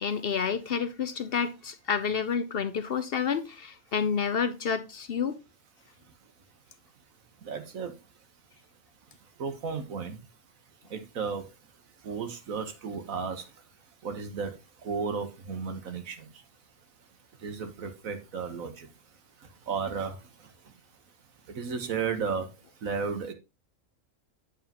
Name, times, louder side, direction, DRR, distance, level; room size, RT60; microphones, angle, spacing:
voice 1, 0.0-5.4, left 6 dB, 55° left, 0.7 m, -29 dB
voice 2, 7.4-7.9 9.4-10.2 10.9-11.4 12.0-13.4 14.0-14.5 14.8-16.2 17.4-18.9 19.7-20.2 21.5-22.5 22.8-23.3, right 5 dB, 85° right, 1.6 m, -33 dB
8.4 x 7.5 x 2.9 m
omnidirectional pair, 1.4 m